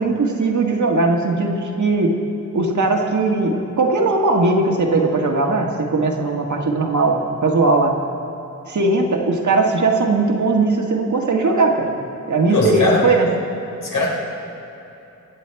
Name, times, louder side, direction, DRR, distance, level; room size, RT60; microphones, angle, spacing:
voice 1, 0.0-2.2 2.5-8.0 8.7-11.9 12.3-13.3, right 3 dB, 65° right, 1 dB, 1.6 m, -19 dB
voice 2, 12.5-13.0 13.8-14.1, left 2 dB, 85° left, -4 dB, 3.9 m, -19 dB
24.0 x 8.3 x 4.6 m, 3.0 s
wide cardioid pair, 135°, 31 cm